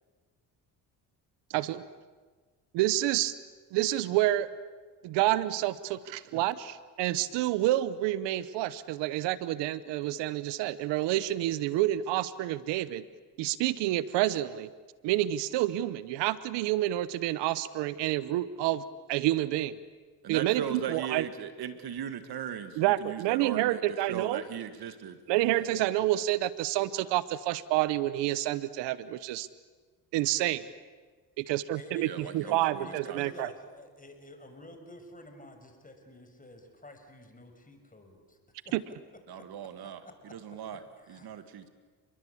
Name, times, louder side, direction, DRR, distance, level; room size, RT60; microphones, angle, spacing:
voice 1, 1.5-1.8 2.7-3.3 3.7-4.5 5.0-13.0 13.4-14.7 15.0-18.8 19.1-19.8 20.3-21.2 22.8-24.4 25.3-29.5 30.1-30.6 31.4-33.5 38.7-38.8, right 15 dB, 85° right, 16 dB, 1.0 m, -28 dB
voice 2, 20.2-25.2 32.0-33.3 39.3-40.0 40.3-40.8 41.1-41.7, right 8 dB, 65° right, 10 dB, 2.1 m, -38 dB
voice 3, 31.7-38.4 39.3-39.4 41.0-41.4, left 1 dB, 20° left, 5 dB, 6.2 m, -50 dB
29.5 x 22.0 x 8.5 m, 1.4 s
supercardioid pair, 75°, 41 cm